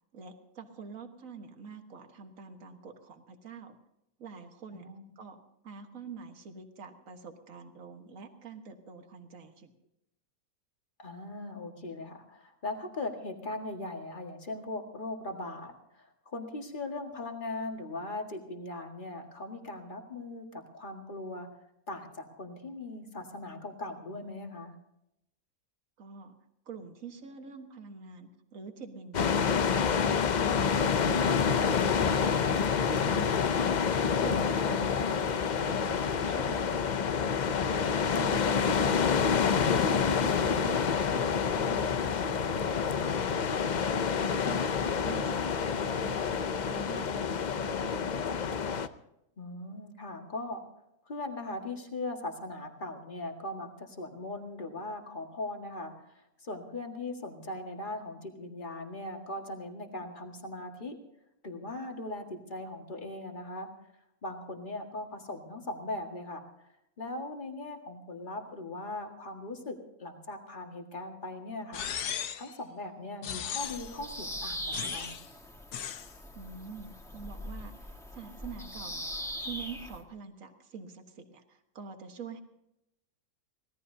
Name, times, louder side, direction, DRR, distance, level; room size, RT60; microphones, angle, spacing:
voice 1, 0.1-3.8 4.2-4.9 5.2-5.4 5.6-9.7 26.0-26.3 26.7-29.8 30.1-37.6 38.1-43.2 43.6-46.3 46.6-48.4 76.4-79.1 79.4-82.4, right 5 dB, 60° right, 6 dB, 1.8 m, -46 dB
voice 2, 4.7-5.1 11.0-21.5 21.9-24.7 49.4-50.6 51.1-61.0 61.4-63.7 64.2-66.7 67.0-71.9 72.4-75.1, left 2 dB, 35° left, 3 dB, 1.9 m, -39 dB
sound 1, 29.1-48.9, left 6 dB, 60° left, 0.4 m, -28 dB
sound 2, 71.7-72.5 73.2-74.0 74.7-75.3 75.7-76.1, left 9 dB, 85° left, 1.4 m, -36 dB
Bird vocalization bird call bird song, 73.6-80.0, equal, ahead, 1.6 m, -41 dB
25.0 x 17.5 x 2.8 m, 0.83 s
omnidirectional pair, 1.6 m